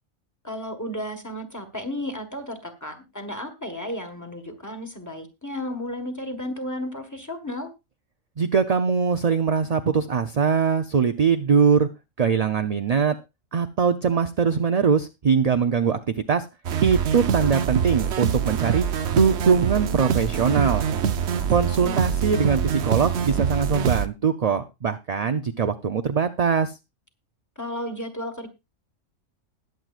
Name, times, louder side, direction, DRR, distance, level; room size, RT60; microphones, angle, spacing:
voice 1, 0.4-7.7 21.4-22.0 27.6-28.5, left 1 dB, 15° left, 6 dB, 1.5 m, -33 dB
voice 2, 8.4-11.9 12.2-13.1 13.5-16.0 16.3-16.4 16.8-18.9 19.1-20.8 21.5-26.7, right 6 dB, 45° right, 8 dB, 0.5 m, -22 dB
Arturia Acid Chorus Loop, 16.6-24.1, right 7 dB, 65° right, 1.0 m, -24 dB
20.0 x 7.7 x 2.4 m, 0.25 s
omnidirectional pair, 1.3 m